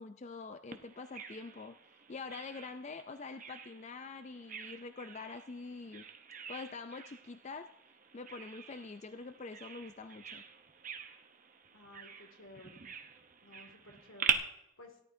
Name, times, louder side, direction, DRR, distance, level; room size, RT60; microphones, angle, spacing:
voice 1, 0.0-1.8 2.1-6.0 6.5-7.7 8.1-10.4, left 4 dB, 35° left, 9 dB, 0.4 m, -45 dB
Bird vocalization bird call bird song, 0.7-14.3, right 7 dB, 40° right, 0.8 m, -43 dB
voice 2, 11.7-12.8 13.4-15.0, left 1 dB, 75° left, 2 dB, 2.3 m, -55 dB
17.5 x 11.5 x 2.7 m, 0.84 s
head